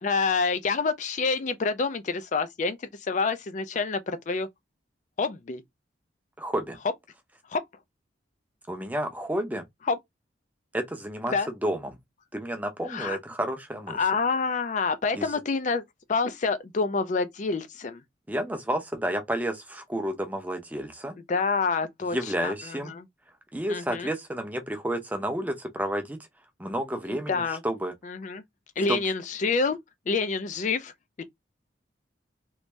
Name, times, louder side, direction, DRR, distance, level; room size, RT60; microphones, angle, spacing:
voice 1, 0.0-4.5 5.2-5.6 7.5-7.6 9.9-10.0 11.3-11.5 12.9-13.2 13.9-15.8 16.1-18.0 21.3-23.0 23.7-24.1 27.1-27.6 28.0-28.4 28.8-29.8 30.1-30.9 31.2-31.3, left 4 dB, 40° left, 0.4 m, -27 dB
voice 2, 6.4-6.8 8.7-9.7 10.7-11.3 11.6-12.0 12.3-14.0 15.1-15.3 18.3-21.2 22.1-22.9 23.5-26.2 26.6-27.9 28.9-29.0, right 1 dB, 10° right, 0.6 m, -30 dB
3.1 x 2.6 x 3.2 m
head